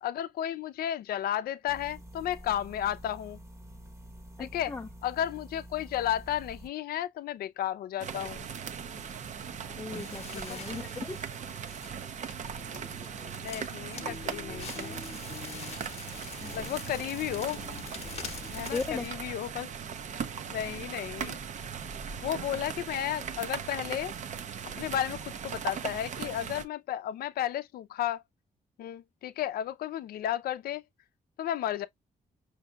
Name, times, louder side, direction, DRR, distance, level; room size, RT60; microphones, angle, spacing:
voice 1, 0.0-3.4 4.4-4.7 5.0-8.5 10.3-10.6 13.4-15.0 16.5-17.6 18.5-19.7 20.5-21.4 22.2-24.1 24.8-28.2 28.8-30.8 31.4-31.9, left 11 dB, 80° left, 0.5 m, -33 dB
sound 1, 1.7-6.7, right 1 dB, 20° right, 0.8 m, -48 dB
voice 2, 4.4-4.9 9.6-11.2 16.4-16.6 18.7-19.1, left 4 dB, 15° left, 0.4 m, -37 dB
sound 2, 8.0-26.6, right 7 dB, 50° right, 0.5 m, -39 dB
Crackle, 8.9-19.1, left 6 dB, 45° left, 0.8 m, -45 dB
5.4 x 2.6 x 2.3 m
cardioid pair, 110°, 15 cm